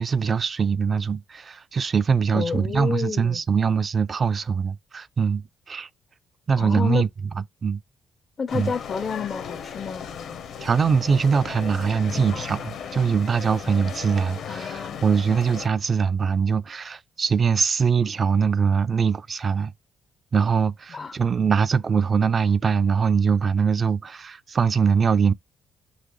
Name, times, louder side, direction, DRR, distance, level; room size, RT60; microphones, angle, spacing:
voice 1, 0.0-5.9 6.5-7.1 7.6-7.8 8.5-8.7 10.6-19.7 20.3-25.3, right 6 dB, 40° right, 0.3 m, -22 dB
voice 2, 2.3-3.4 6.6-7.1 8.4-10.1 14.5-15.0 20.9-21.2, left 6 dB, 45° left, 0.4 m, -29 dB
sound 1, 8.5-15.7, left 7 dB, 75° left, 0.8 m, -36 dB
4.0 x 2.9 x 3.0 m
cardioid pair, 90°, 0 cm